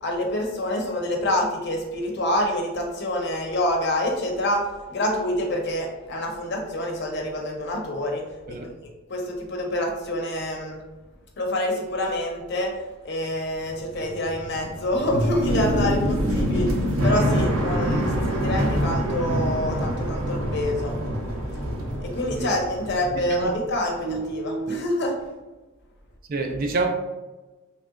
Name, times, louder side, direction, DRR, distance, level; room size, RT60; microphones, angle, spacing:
voice 1, 0.0-8.6 9.1-10.8 11.4-16.7 17.0-20.9 22.0-25.2, left 1 dB, 55° left, 0.6 m, -27 dB
sound 1, 13.6-23.7 24.0-24.8, equal, 85° right, 0.7 m, -26 dB
voice 2, 23.1-23.5 24.7-24.8 26.3-26.9, right 3 dB, 40° right, 0.4 m, -27 dB
3.2 x 2.8 x 2.4 m
head